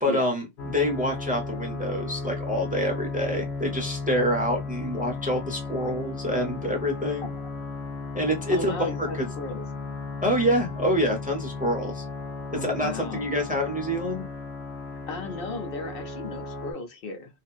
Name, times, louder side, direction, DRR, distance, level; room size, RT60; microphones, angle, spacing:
voice 1, 0.0-7.4 8.1-9.3 10.2-12.0 12.5-14.3, equal, 10° right, 0.7 m, -27 dB
sound 1, 0.6-16.7, left 3 dB, 85° left, 0.9 m, -35 dB
voice 2, 8.5-9.6 12.5-13.3 15.1-17.4, left 3 dB, 65° left, 0.8 m, -35 dB
2.8 x 2.5 x 2.3 m
omnidirectional pair, 1.1 m